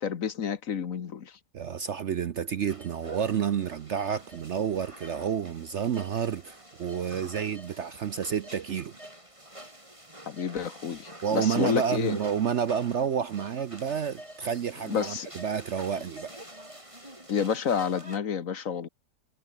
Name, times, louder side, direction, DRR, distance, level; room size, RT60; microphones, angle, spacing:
voice 1, 0.0-1.4 10.3-12.2 14.9-15.3 17.3-18.9, left 7 dB, 55° left, 1.5 m, -29 dB
voice 2, 1.5-9.0 11.2-16.3, right 8 dB, 55° right, 0.9 m, -30 dB
sound 1, 2.7-18.2, right 1 dB, 20° right, 5.7 m, -47 dB
omnidirectional pair, 1.7 m